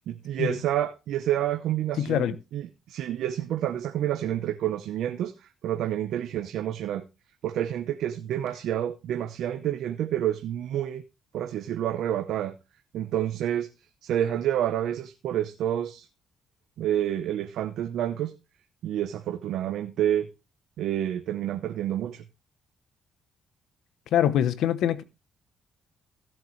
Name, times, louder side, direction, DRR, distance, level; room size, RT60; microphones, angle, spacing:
voice 1, 0.1-5.3 5.6-7.0 7.4-11.0 11.3-12.5 12.9-13.7 14.0-16.1 16.8-18.3 18.8-20.3 20.8-22.2, right 11 dB, 80° right, 0.9 m, -28 dB
voice 2, 2.0-2.3 24.1-25.0, left 10 dB, 80° left, 0.8 m, -23 dB
16.5 x 7.5 x 3.2 m
cardioid pair, 90°, 0 cm